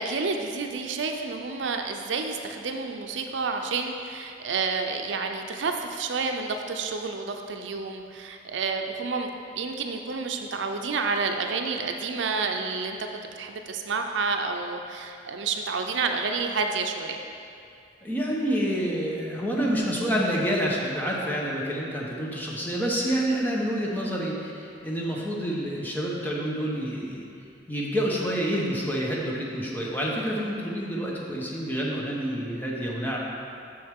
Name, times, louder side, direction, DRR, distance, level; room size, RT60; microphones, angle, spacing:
voice 1, 0.0-13.0 13.3-17.2, right 4 dB, 75° right, 4 dB, 0.5 m, -29 dB
voice 2, 18.0-27.3 27.7-33.2, equal, 10° left, -3 dB, 0.9 m, -28 dB
7.7 x 6.4 x 3.6 m, 2.5 s
head